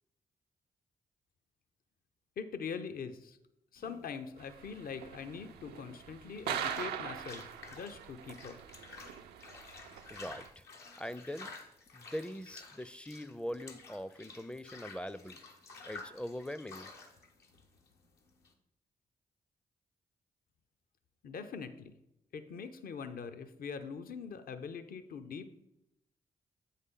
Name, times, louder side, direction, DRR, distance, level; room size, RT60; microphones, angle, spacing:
voice 1, 2.4-3.4 3.7-7.4 7.7-8.6 21.2-21.9 22.3-25.5, left 6 dB, 65° left, 9 dB, 0.7 m, -43 dB
sound 1, 3.8-18.5, left 4 dB, 80° left, 1.1 m, -52 dB
sound 2, 4.4-10.5, right 9 dB, 85° right, 0.4 m, -43 dB
voice 2, 10.1-10.6 11.0-11.5 11.9-15.4 15.9-16.9, equal, 5° left, 15 dB, 0.4 m, -42 dB
8.0 x 5.5 x 3.7 m, 0.83 s
supercardioid pair, 40°, 16 cm